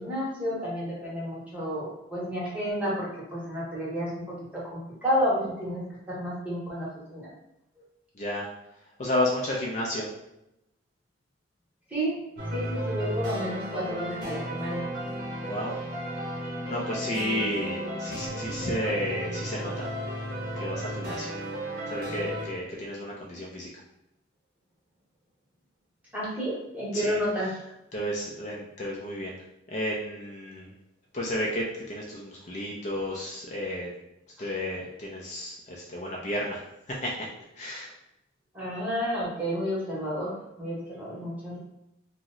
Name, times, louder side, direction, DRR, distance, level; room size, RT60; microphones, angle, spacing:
voice 1, 0.0-7.3 11.9-12.2 12.5-14.8 26.1-27.5 34.4-34.5 38.5-41.6, equal, 5° right, -7 dB, 0.9 m, -31 dB
voice 2, 8.2-8.5 9.0-10.1 15.4-15.8 16.7-19.9 20.6-21.3 21.9-23.7 26.9-27.2 27.9-29.3 29.7-30.7 31.1-33.9 34.4-36.6 36.9-37.3 37.6-37.9, left 1 dB, 35° left, -3 dB, 0.4 m, -32 dB
sound 1, 12.4-22.5, equal, 50° right, 0.7 m, -34 dB
2.8 x 2.0 x 3.6 m, 0.86 s
head